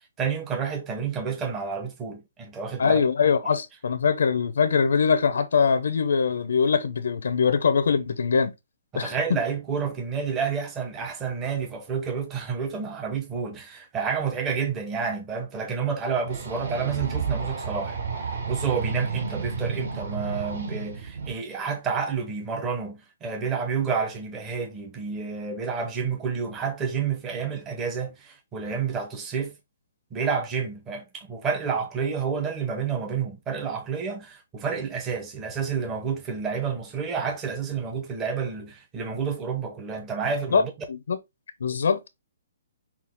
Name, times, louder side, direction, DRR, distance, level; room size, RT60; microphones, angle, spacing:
voice 1, 0.2-3.0 3.4-3.5 8.9-18.0 18.5-29.6 30.1-40.7, right 6 dB, 10° right, 0.8 m, -29 dB
voice 2, 2.8-8.5 8.9-9.1 40.5-40.6 40.9-41.2 41.6-42.1, left 6 dB, 75° left, 0.7 m, -22 dB
sound 1, 16.3-21.3, right 5 dB, 60° right, 3.3 m, -31 dB
5.9 x 2.4 x 3.6 m
hypercardioid pair, 175°, 0 cm